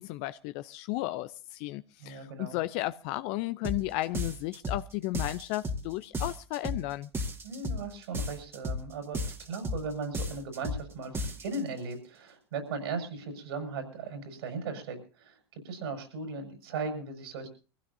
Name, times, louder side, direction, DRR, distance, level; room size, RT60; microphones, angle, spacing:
voice 1, 0.0-7.1, left 17 dB, 50° left, 0.6 m, -34 dB
voice 2, 2.0-2.6 7.4-17.5, right 4 dB, 70° right, 6.4 m, -37 dB
sound 1, 3.6-3.8 4.1-4.8 5.1-5.8 6.1-6.8 7.1-7.8 8.1-8.8 9.1-9.8 10.1-10.8 11.1-11.6, left 1 dB, 20° right, 2.0 m, -33 dB
24.0 x 16.0 x 2.8 m
hypercardioid pair, 95°, 13 cm